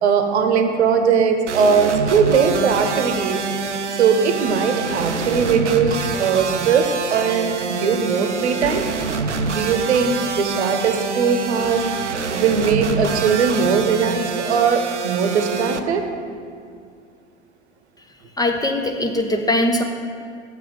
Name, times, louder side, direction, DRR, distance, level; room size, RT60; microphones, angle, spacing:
voice 1, 0.0-3.5 3.9-8.9 9.5-11.8 12.3-16.0, right 6 dB, 70° right, 6 dB, 0.9 m, -19 dB
sound 1, 1.5-15.8, right 5 dB, 90° right, 0.5 m, -26 dB
voice 2, 18.4-19.8, left 1 dB, 10° left, 4 dB, 0.5 m, -20 dB
6.8 x 6.2 x 6.7 m, 2.2 s
figure-of-eight pair, 70°, 35 cm